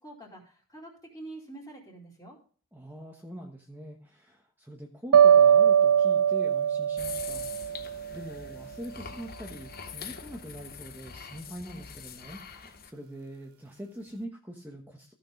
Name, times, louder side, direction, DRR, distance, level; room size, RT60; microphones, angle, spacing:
voice 1, 0.0-2.4, right 2 dB, 15° left, -7 dB, 2.6 m, -46 dB
voice 2, 2.7-15.1, equal, 10° right, 0 dB, 1.1 m, -44 dB
sound 1, 5.1-8.2, right 8 dB, 75° right, 0.4 m, -21 dB
sound 2, 7.0-12.9, left 7 dB, 45° left, 0.9 m, -44 dB
14.5 x 6.0 x 5.2 m, 0.41 s
head